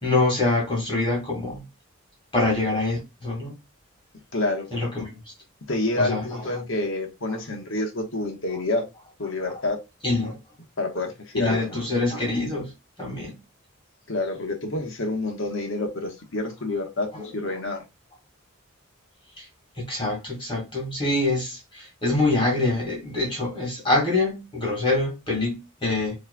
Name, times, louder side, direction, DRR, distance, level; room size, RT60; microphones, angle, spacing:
voice 1, 0.0-1.6 2.3-3.5 4.7-5.1 6.0-6.2 10.0-10.4 11.4-12.7 13.0-13.4 19.4-19.5 19.8-26.1, left 2 dB, 25° left, 1.9 m, -25 dB
voice 2, 4.3-4.7 5.7-8.8 9.2-9.8 10.8-11.6 14.1-17.8, left 2 dB, 65° left, 1.2 m, -28 dB
5.9 x 3.2 x 2.2 m
head